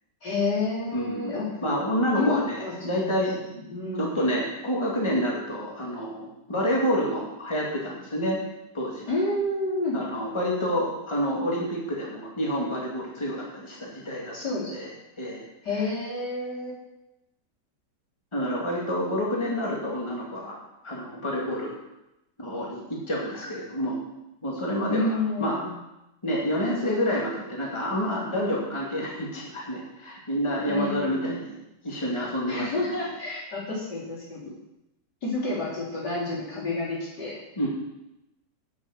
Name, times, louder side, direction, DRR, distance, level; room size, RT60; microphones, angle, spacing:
voice 1, 0.2-1.5 2.1-3.3 3.5-4.2 9.1-10.0 14.3-14.7 15.6-16.7 24.9-25.7 30.7-31.4 32.5-34.5 35.2-37.4, left 2 dB, 75° left, -7 dB, 4.3 m, -29 dB
voice 2, 0.9-3.3 4.0-8.4 8.7-9.1 9.9-14.4 14.7-14.9 15.2-15.4 18.3-20.6 20.8-21.7 22.4-24.0 24.4-25.6 26.2-31.6 31.8-32.7 37.6-37.7, equal, 15° left, -3 dB, 2.2 m, -28 dB
9.2 x 7.2 x 7.1 m, 0.91 s
omnidirectional pair, 1.8 m